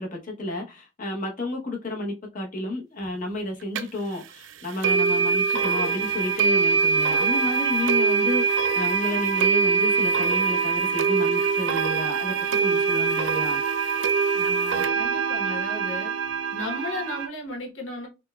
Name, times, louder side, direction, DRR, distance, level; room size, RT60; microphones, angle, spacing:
voice 1, 0.0-12.3 12.6-13.6, left 2 dB, 45° left, 1.0 m, -31 dB
sound 1, 3.7-3.8 4.8-17.3, right 5 dB, 75° right, 0.4 m, -23 dB
voice 2, 14.3-16.1 16.5-18.1, left 2 dB, 90° left, 1.1 m, -35 dB
5.3 x 2.2 x 2.3 m
head